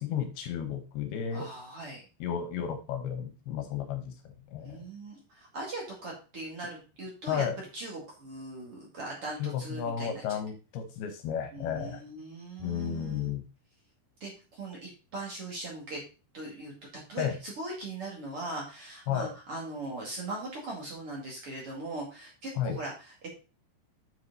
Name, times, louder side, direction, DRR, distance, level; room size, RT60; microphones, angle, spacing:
voice 1, 0.0-1.5 2.2-4.1 4.5-4.9 7.3-7.6 9.4-12.0 12.6-13.4 17.2-17.3 19.1-19.3 22.6-22.8, left 8 dB, 75° left, 7 dB, 2.8 m, -33 dB
voice 2, 1.3-2.1 4.6-7.4 7.7-10.2 11.5-13.3 14.2-16.0 16.3-16.7 17.1-23.3, right 2 dB, 40° right, -2 dB, 2.7 m, -40 dB
7.4 x 6.5 x 4.0 m, 0.32 s
omnidirectional pair, 4.8 m